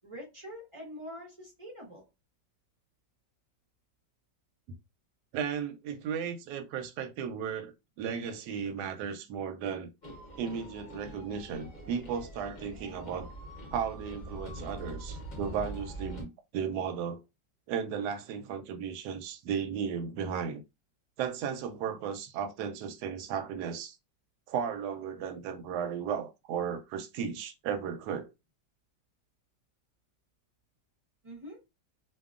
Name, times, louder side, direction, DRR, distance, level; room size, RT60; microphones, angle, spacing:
voice 1, 0.0-2.0 31.2-31.6, equal, 45° right, 0.3 m, -45 dB
voice 2, 5.3-7.7 8.0-9.9 10.4-13.3 13.7-17.2 17.7-20.6 21.2-24.0 24.5-28.3, right 7 dB, 75° right, 1.0 m, -35 dB
sound 1, 10.0-16.2, equal, 45° left, 0.6 m, -44 dB
2.8 x 2.3 x 2.4 m
omnidirectional pair, 2.0 m